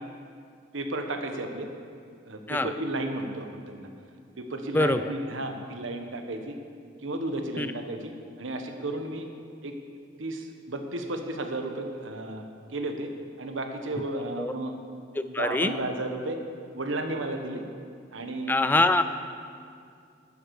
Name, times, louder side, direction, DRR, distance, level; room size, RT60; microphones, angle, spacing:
voice 1, 0.7-1.7 2.2-3.9 4.4-6.6 7.0-8.1 8.4-9.3 9.6-9.7 10.2-12.4 12.7-13.1 13.4-14.7 15.3-16.4 16.7-17.6 18.1-18.7, right 2 dB, 90° right, 5 dB, 1.2 m, -33 dB
voice 2, 15.2-15.7 18.5-19.0, left 2 dB, 10° left, 11 dB, 0.3 m, -24 dB
13.0 x 11.0 x 4.8 m, 2.3 s
head